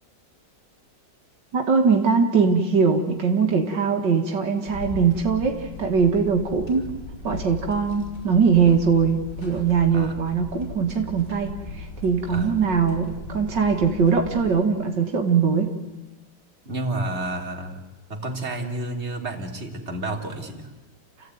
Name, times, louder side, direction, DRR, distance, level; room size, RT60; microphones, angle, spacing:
voice 1, 1.5-6.8 7.2-15.7, right 5 dB, 75° right, 3 dB, 2.4 m, -21 dB
sound 1, 4.7-14.6, left 3 dB, 45° left, 5.6 m, -38 dB
voice 2, 16.6-17.8 18.1-20.7, right 2 dB, 35° right, 2 dB, 3.1 m, -30 dB
29.5 x 15.5 x 9.3 m, 1.1 s
omnidirectional pair, 2.0 m